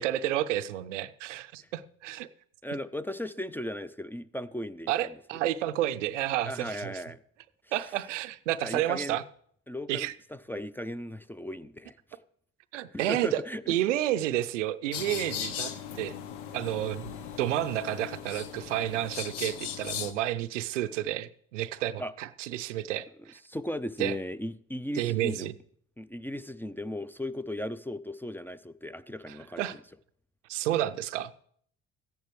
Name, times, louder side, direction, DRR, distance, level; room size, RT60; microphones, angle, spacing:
voice 1, 0.0-2.3 4.9-6.9 7.7-9.2 9.9-10.1 12.7-13.4 13.7-16.2 16.5-23.3 24.0-24.2 25.0-25.5 29.3-29.8 30.5-31.3, right 13 dB, 90° right, 0.5 m, -30 dB
voice 2, 2.6-5.1 6.5-7.2 7.6-7.7 8.6-9.2 9.7-12.0 12.9-13.7 22.0-22.1 23.2-25.5 26.0-29.8, left 1 dB, 5° left, 0.4 m, -37 dB
sound 1, 14.9-20.1, left 9 dB, 80° left, 0.8 m, -38 dB
14.0 x 10.5 x 3.1 m
hypercardioid pair, 55°, 36 cm